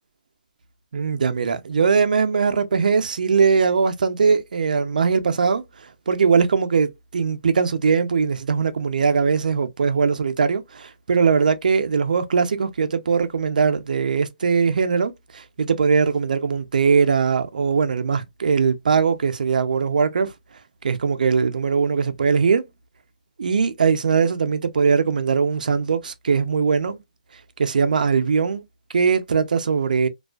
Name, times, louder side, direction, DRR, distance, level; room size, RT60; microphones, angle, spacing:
voice 1, 0.9-20.3 20.8-22.7 23.4-27.0 27.6-28.6 28.9-30.1, right 5 dB, 75° right, 0.5 m, -20 dB
2.5 x 2.3 x 2.2 m
hypercardioid pair, 170°, 5 cm